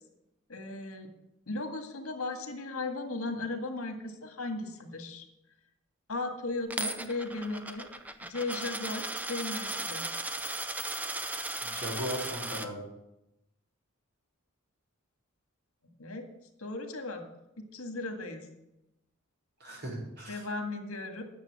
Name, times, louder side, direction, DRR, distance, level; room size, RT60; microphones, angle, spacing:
voice 1, 0.5-1.1 1.5-5.3 6.1-7.9 8.2-10.1 16.0-16.3 16.6-17.3 17.6-18.5 20.3-21.2, left 2 dB, 85° left, 5 dB, 1.9 m, -36 dB
Coin (dropping), 6.7-12.7, right 2 dB, 5° right, 0.6 m, -36 dB
voice 2, 11.6-12.8 19.6-20.5, equal, 50° right, -3 dB, 4.6 m, -37 dB
9.6 x 6.8 x 8.7 m, 0.89 s
head